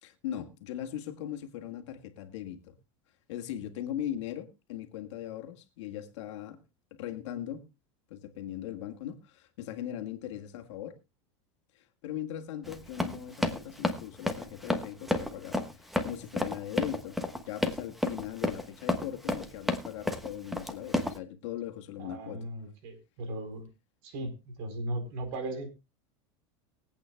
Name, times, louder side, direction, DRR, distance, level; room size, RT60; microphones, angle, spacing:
voice 1, 0.0-2.7 3.3-6.6 7.0-7.7 8.1-11.0 11.7-17.2 17.5-22.5, left 11 dB, 75° left, 1.8 m, -39 dB
Run, 12.6-21.2, left 1 dB, ahead, 1.2 m, -31 dB
voice 2, 22.0-23.7 24.0-25.7, right 1 dB, 60° right, 3.9 m, -37 dB
22.5 x 8.6 x 2.2 m
supercardioid pair, 140°, 15 cm